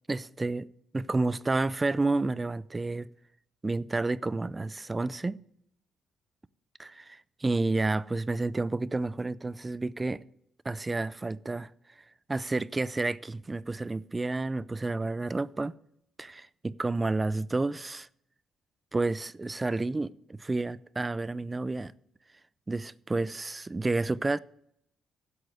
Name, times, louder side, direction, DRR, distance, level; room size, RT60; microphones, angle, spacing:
voice 1, 0.1-0.7 0.9-3.1 3.6-5.4 6.8-10.2 10.6-11.7 12.3-15.7 16.2-18.1 18.9-21.9 22.7-24.4, right 3 dB, 20° right, 0.4 m, -30 dB
8.0 x 7.9 x 8.3 m
cardioid pair, 90°, 0 cm